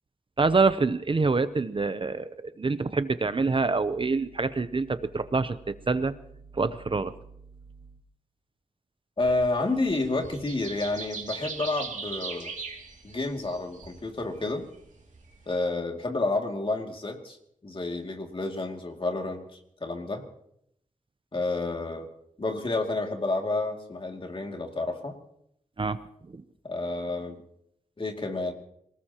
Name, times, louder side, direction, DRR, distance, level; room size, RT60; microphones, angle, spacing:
voice 1, 0.4-5.6 5.9-6.1 6.5-7.2 25.8-26.0 26.3-26.4, right 4 dB, 40° right, 13 dB, 0.6 m, -26 dB
voice 2, 9.2-12.5 13.0-14.7 15.5-17.4 17.6-19.4 19.8-20.2 21.3-22.1 22.4-25.1 26.6-27.4 28.0-28.5, left 2 dB, 40° left, 2 dB, 2.4 m, -30 dB
sound 1, 9.2-15.6, right 4 dB, 65° right, 2.5 m, -40 dB
27.0 x 18.5 x 2.9 m, 0.73 s
wide cardioid pair, 110°, 14 cm